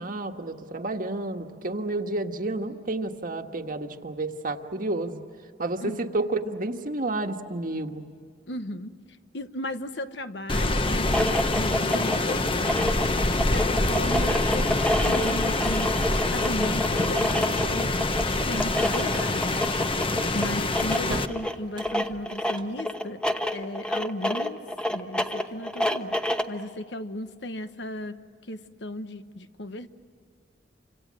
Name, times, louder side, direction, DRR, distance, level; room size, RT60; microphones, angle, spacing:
voice 1, 0.0-5.2 5.6-8.0, right 2 dB, 50° right, 5 dB, 1.5 m, -30 dB
voice 2, 8.5-8.9 9.3-12.4 12.8-18.1 18.5-19.6 20.3-23.2 23.5-24.6 24.9-28.2 28.5-29.9, left 1 dB, 75° left, 10 dB, 1.2 m, -35 dB
Rain, 10.5-21.3, left 2 dB, 30° left, 1.0 m, -26 dB
sound 1, 11.0-26.6, left 1 dB, 5° left, 1.1 m, -29 dB
sound 2, 20.1-22.8, right 1 dB, 25° right, 1.1 m, -43 dB
29.0 x 26.0 x 7.6 m, 2.2 s
head